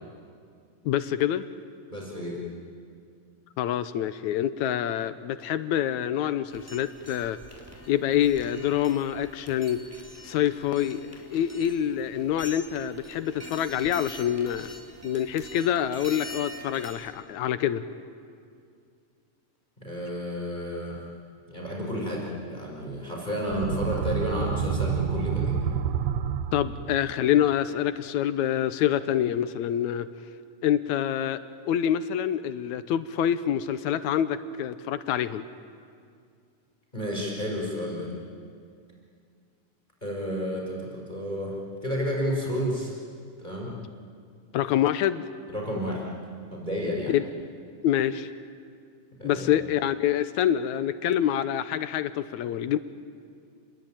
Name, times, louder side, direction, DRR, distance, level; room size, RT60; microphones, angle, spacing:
voice 1, 0.9-1.5 3.6-7.4 7.9-9.8 10.2-14.7 15.0-17.8 26.5-30.1 30.6-31.4 31.7-35.5 44.5-45.2 47.1-47.2 47.8-48.3 49.2-52.8, left 10 dB, 70° left, 13 dB, 1.9 m, -26 dB
voice 2, 1.9-2.4 19.8-21.0 21.5-25.7 36.9-38.1 40.0-42.9 43.4-43.8 45.5-46.1 46.5-47.1 49.2-49.5, equal, 10° left, -2 dB, 5.4 m, -31 dB
sound 1, 6.5-17.1, left 1 dB, 5° right, 3.0 m, -45 dB
sound 2, 23.4-27.2, right 8 dB, 80° right, 1.4 m, -29 dB
30.0 x 21.0 x 9.0 m, 2.2 s
omnidirectional pair, 3.9 m